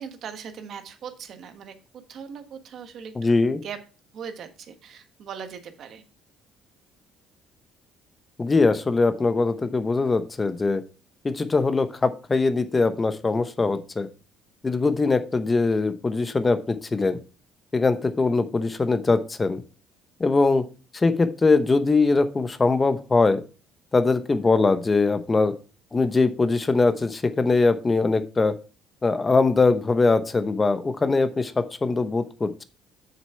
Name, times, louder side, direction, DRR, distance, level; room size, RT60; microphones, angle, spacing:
voice 1, 0.0-1.8 2.1-3.1 3.5-3.8 4.1-6.0, right 7 dB, 55° right, 8 dB, 1.4 m, -39 dB
voice 2, 3.2-3.6 8.4-10.8 11.2-14.1 14.6-17.2 17.7-19.6 20.2-20.6 20.9-23.4 23.9-25.5 25.9-28.5 29.0-32.6, left 3 dB, 20° left, 11 dB, 0.8 m, -22 dB
7.3 x 6.4 x 4.3 m, 0.33 s
cardioid pair, 120°, 0 cm